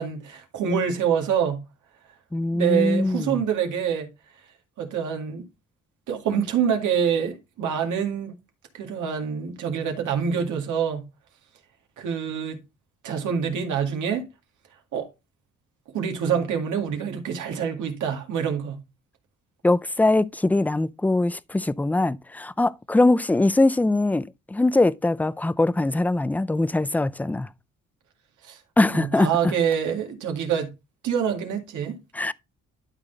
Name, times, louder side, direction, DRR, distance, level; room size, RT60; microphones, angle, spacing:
voice 1, 0.0-1.6 2.5-4.1 4.8-5.5 6.1-8.4 8.7-11.0 12.0-12.6 13.0-14.3 14.9-15.1 15.9-18.8 28.4-28.6 28.9-30.7 31.0-32.0, right 7 dB, 80° right, 2.0 m, -26 dB
voice 2, 2.3-3.4 19.6-27.5 28.8-29.5 32.1-32.3, left 2 dB, 5° left, 0.4 m, -22 dB
12.0 x 4.0 x 4.0 m
cardioid pair, 90°, 30 cm